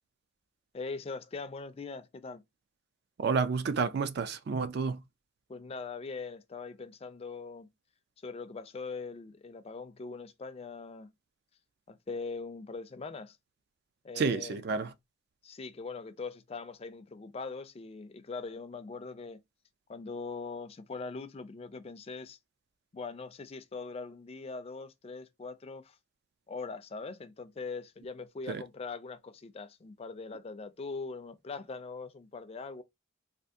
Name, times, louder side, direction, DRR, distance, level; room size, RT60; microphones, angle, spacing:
voice 1, 0.7-2.4 5.5-7.7 8.2-11.1 11.9-13.4 14.0-14.6 15.4-19.4 19.9-22.4 22.9-26.0 26.5-32.8, left 4 dB, 30° left, 0.3 m, -41 dB
voice 2, 3.2-5.0 14.2-14.9 28.5-28.6, right 5 dB, 50° right, 0.3 m, -30 dB
3.4 x 2.4 x 2.6 m
head